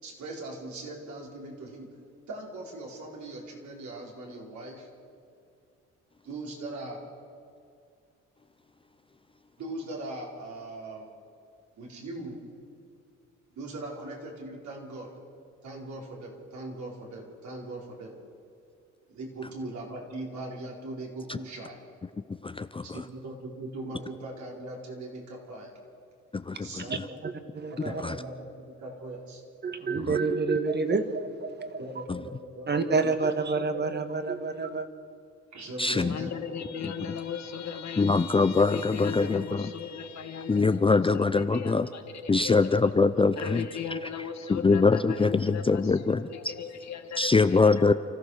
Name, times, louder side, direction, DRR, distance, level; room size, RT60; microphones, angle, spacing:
voice 1, 0.0-1.9 2.3-4.9 6.2-7.0 9.6-11.1 11.7-12.4 13.5-15.1 15.6-18.1 19.1-21.8 22.8-25.7 26.6-27.2 27.8-29.4 31.8-33.1 35.5-36.3, right 2 dB, 70° right, -2 dB, 4.9 m, -40 dB
voice 2, 22.4-22.8 26.3-27.0 28.0-28.2 30.0-30.2 35.8-36.1 38.0-39.7 40.5-41.9 42.3-43.6 44.5-46.2 47.2-47.9, left 4 dB, 20° left, 11 dB, 0.5 m, -23 dB
voice 3, 26.9-28.0 29.6-31.8 32.7-34.9, right 4 dB, 35° right, 8 dB, 1.8 m, -28 dB
voice 4, 36.0-42.9 43.4-47.8, left 7 dB, 65° left, 5 dB, 2.1 m, -38 dB
29.0 x 14.0 x 6.6 m, 2.4 s
cardioid pair, 90°, 30 cm